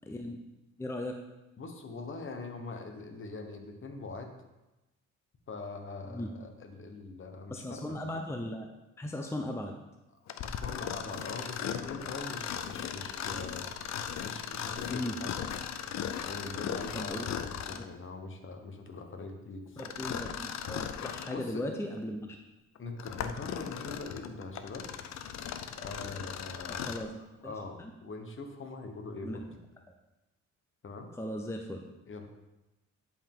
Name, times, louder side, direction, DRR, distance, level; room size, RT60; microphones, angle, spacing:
voice 1, 0.0-0.4 0.8-1.2 6.1-6.3 7.5-8.7 9.0-9.8 14.9-15.2 16.9-17.3 17.7-17.8 19.8-22.4 26.9-27.2 27.4-27.5 27.8-27.9 29.2-29.4 31.1-31.8, left 1 dB, 10° left, 3 dB, 0.7 m, -37 dB
voice 2, 1.6-4.3 5.5-8.0 10.4-13.7 14.2-15.4 16.2-19.8 21.3-21.7 22.8-24.9 25.7-27.0 27.4-29.4 30.8-31.1 32.1-32.3, left 3 dB, 40° left, 5 dB, 1.2 m, -42 dB
Mechanisms, 10.3-18.0 19.8-21.4 22.0-22.1 22.8-27.1, left 9 dB, 60° left, 0.6 m, -38 dB
10.5 x 4.9 x 3.7 m, 1.0 s
cardioid pair, 90°, 30 cm